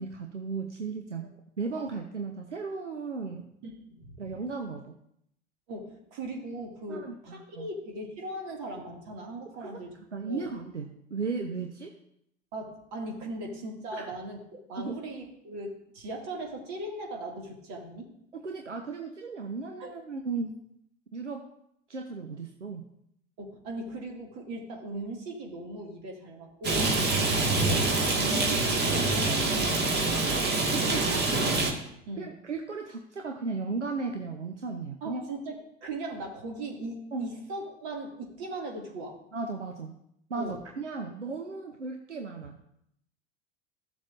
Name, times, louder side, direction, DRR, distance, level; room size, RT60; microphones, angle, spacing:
voice 1, 0.0-3.5 4.2-4.9 6.9-7.7 9.6-9.8 10.1-11.9 13.9-14.1 14.8-15.0 18.3-20.6 21.1-21.5 21.9-22.9 29.5-30.0 30.7-31.2 32.2-35.2 37.1-37.3 39.3-39.9 40.3-42.6, right 4 dB, 85° right, 3 dB, 0.8 m, -36 dB
voice 2, 3.6-4.2 5.7-9.9 10.3-10.5 12.5-18.1 19.8-19.9 23.4-27.0 28.1-29.6 30.8-31.2 32.1-32.3 35.0-39.2 40.3-40.6, right 2 dB, 50° right, 1 dB, 2.3 m, -39 dB
Rain, 26.6-31.7, right 2 dB, 30° right, 1.7 m, -25 dB
14.5 x 7.1 x 2.6 m, 0.75 s
figure-of-eight pair, 75°, 35 cm